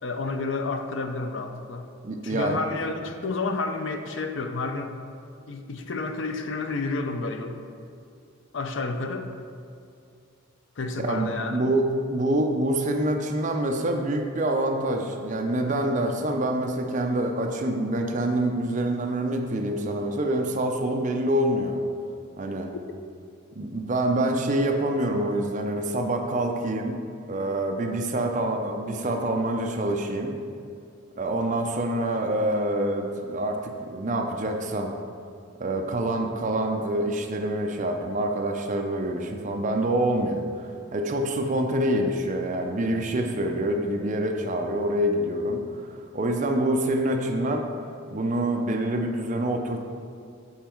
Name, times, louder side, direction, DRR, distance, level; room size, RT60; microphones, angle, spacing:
voice 1, 0.0-1.9 2.2-5.0 5.5-7.6 8.5-9.3 10.8-11.7 22.7-22.8, left 3 dB, 60° left, 6 dB, 0.5 m, -30 dB
voice 2, 2.0-2.6 11.0-21.8 22.4-22.7 23.5-27.0 27.3-30.3 31.2-34.9 35.6-45.6 45.9-47.7 48.1-49.8, right 1 dB, 35° right, 3 dB, 0.5 m, -26 dB
7.3 x 4.6 x 4.4 m, 2.4 s
head